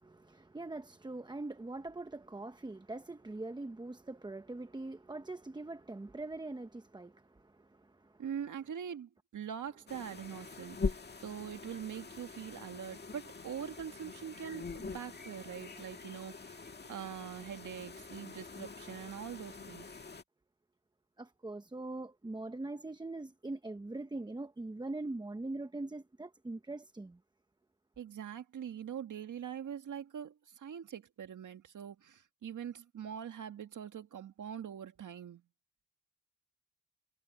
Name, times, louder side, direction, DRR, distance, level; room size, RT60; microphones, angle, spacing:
voice 1, 0.0-8.2 21.2-27.2, right 2 dB, 15° right, 0.9 m, -42 dB
voice 2, 8.2-19.9 28.0-35.4, right 8 dB, 75° right, 1.8 m, -43 dB
sound 1, 9.9-20.2, left 4 dB, 35° left, 1.9 m, -43 dB
wide cardioid pair, 110°, 31 cm